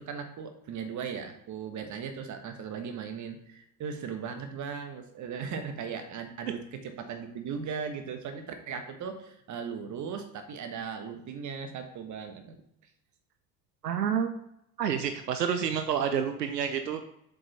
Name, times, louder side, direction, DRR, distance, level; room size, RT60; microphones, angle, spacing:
voice 1, 0.0-12.6, right 6 dB, 40° right, 7 dB, 1.4 m, -38 dB
voice 2, 13.8-14.3 14.8-17.1, right 8 dB, 80° right, 8 dB, 0.6 m, -29 dB
7.5 x 5.4 x 4.2 m, 0.77 s
figure-of-eight pair, 60°, 48 cm